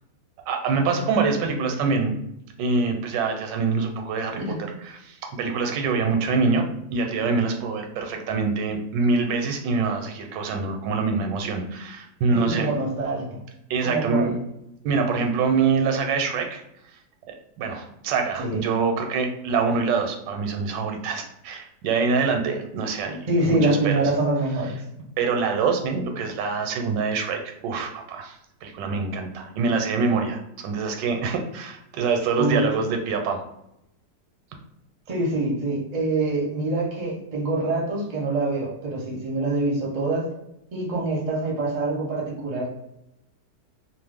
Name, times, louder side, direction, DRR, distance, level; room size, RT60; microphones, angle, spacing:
voice 1, 0.5-2.1 2.6-4.6 4.8-6.6 6.9-12.7 13.7-14.4 14.8-16.6 17.3-24.0 25.2-33.4, right 4 dB, 85° right, 4 dB, 1.2 m, -25 dB
voice 2, 12.3-13.4 13.8-14.4 18.4-18.6 23.3-24.7 32.4-32.6 35.1-40.3 40.7-42.7, right 2 dB, 50° right, -2 dB, 0.5 m, -25 dB
2.9 x 2.0 x 3.4 m, 0.82 s
omnidirectional pair, 1.9 m